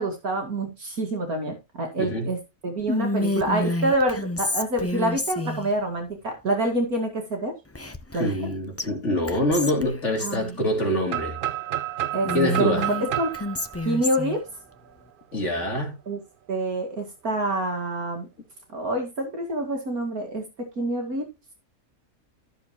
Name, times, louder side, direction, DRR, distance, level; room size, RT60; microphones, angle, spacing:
voice 1, 0.0-7.5 8.1-8.3 10.2-10.6 12.1-12.8 13.2-13.3 13.8-14.4 16.1-16.2 16.5-18.3 18.7-20.4 20.8-21.3, right 1 dB, 65° right, 2.5 m, -27 dB
voice 2, 2.0-2.3 8.2-11.4 12.3-12.9 15.3-16.0, left 1 dB, 45° left, 3.4 m, -25 dB
Whispering, 2.9-5.7 7.7-8.5 8.8-8.9 9.3-10.4 12.2-14.4, left 2 dB, 20° left, 0.4 m, -29 dB
sound 1, 11.1-14.9, right 12 dB, 85° right, 0.4 m, -31 dB
13.5 x 6.9 x 3.0 m
omnidirectional pair, 1.7 m